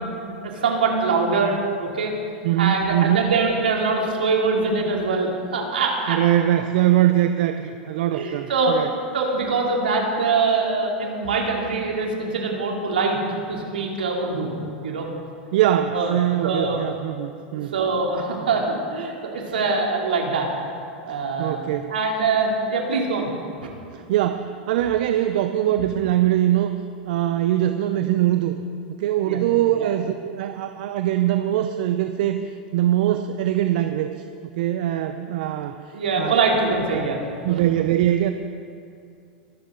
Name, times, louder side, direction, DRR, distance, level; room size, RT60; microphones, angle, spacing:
voice 1, 0.2-2.1 2.6-6.2 8.1-14.5 14.8-15.1 15.9-16.1 16.4-16.9 17.7-20.5 21.0-21.6 21.9-23.3 23.6-23.7 29.2-29.4 29.8-29.9 35.9-37.2, right 4 dB, 85° right, -1 dB, 3.2 m, -23 dB
voice 2, 2.4-3.3 6.1-8.9 15.5-17.7 21.4-21.9 23.9-26.7 27.1-28.6 28.9-32.4 32.7-34.1 34.5-35.8 36.2-36.4 36.9-37.1 37.4-38.3, right 12 dB, 65° right, 8 dB, 0.7 m, -22 dB
23.0 x 11.5 x 4.0 m, 2.5 s
hypercardioid pair, 100°, 5 cm